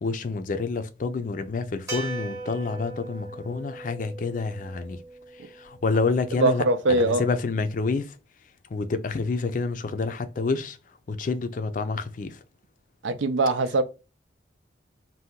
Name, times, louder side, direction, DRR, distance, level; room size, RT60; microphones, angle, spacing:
voice 1, 0.0-5.0 5.4-8.1 8.7-10.8 11.1-12.4, left 4 dB, 45° left, 0.4 m, -28 dB
sound 1, 1.9-6.2, right 3 dB, 20° right, 0.8 m, -39 dB
voice 2, 6.4-7.2 13.0-13.8, right 2 dB, 80° right, 0.5 m, -22 dB
2.7 x 2.2 x 3.5 m
head